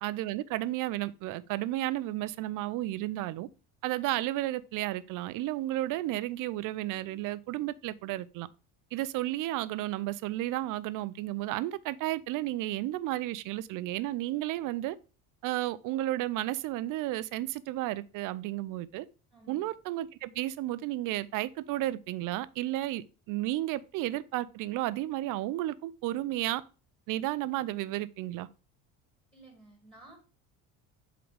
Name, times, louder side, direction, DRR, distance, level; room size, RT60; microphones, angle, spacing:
voice 1, 0.0-3.5 3.8-8.5 8.9-15.0 15.4-19.1 19.5-26.6 27.1-28.5, right 15 dB, 60° right, 0.5 m, -33 dB
voice 2, 19.3-19.7 29.3-30.2, right 2 dB, 5° left, 2.0 m, -54 dB
7.8 x 3.9 x 3.3 m
cardioid pair, 145°, 37 cm